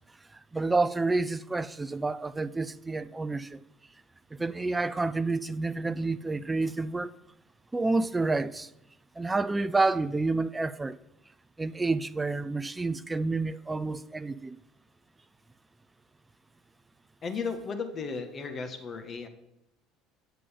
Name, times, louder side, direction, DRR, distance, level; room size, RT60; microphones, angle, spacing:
voice 1, 0.3-3.6 4.3-7.1 7.7-8.7 9.2-11.0 11.6-14.6, right 3 dB, 15° right, 0.4 m, -29 dB
voice 2, 17.2-19.3, left 5 dB, 35° left, 1.5 m, -35 dB
8.9 x 6.7 x 5.1 m
hypercardioid pair, 65°, 0 cm